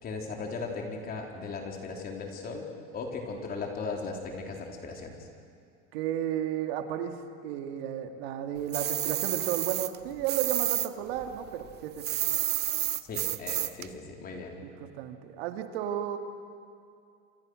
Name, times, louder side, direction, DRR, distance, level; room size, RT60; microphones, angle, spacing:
voice 1, 0.0-2.7 2.9-5.3 13.1-14.6, left 4 dB, 30° left, 1 dB, 4.0 m, -37 dB
voice 2, 5.9-7.1 7.4-12.0 14.6-16.2, right 10 dB, 80° right, 6 dB, 2.3 m, -33 dB
sound 1, 8.7-10.9 11.2-13.9, right 13 dB, 35° right, 0.7 m, -30 dB
27.5 x 27.0 x 6.5 m, 2.4 s
supercardioid pair, 140°, 30 cm